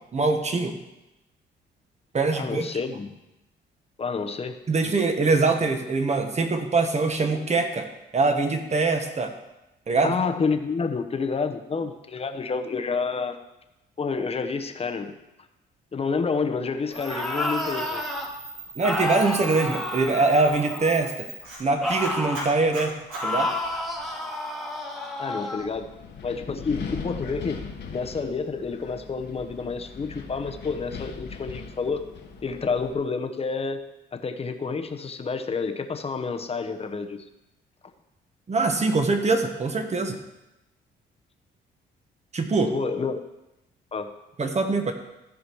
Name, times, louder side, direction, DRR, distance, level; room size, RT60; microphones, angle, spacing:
voice 1, 0.1-0.8 2.1-2.7 4.7-9.3 9.9-10.2 18.8-21.3 21.6-23.0 23.2-23.5 38.5-40.2 42.3-42.7 44.4-44.9, right 3 dB, 35° right, 5 dB, 1.3 m, -23 dB
voice 2, 2.3-3.1 4.0-4.6 10.0-13.4 14.0-15.2 15.9-18.0 19.6-19.8 25.2-25.9 26.2-27.6 27.9-32.1 32.4-33.8 34.1-37.3 42.7-43.2 43.9-44.1, left 4 dB, 30° left, 7 dB, 0.9 m, -29 dB
sound 1, 16.9-18.3 18.8-21.1 21.8-22.5 23.2-25.7, left 1 dB, ahead, 1.6 m, -30 dB
Camera, 16.9-24.1, right 2 dB, 80° right, 4.2 m, -40 dB
Wind, 25.6-32.9, left 5 dB, 60° left, 1.4 m, -39 dB
14.0 x 5.0 x 4.7 m, 0.95 s
cardioid pair, 90°, 20 cm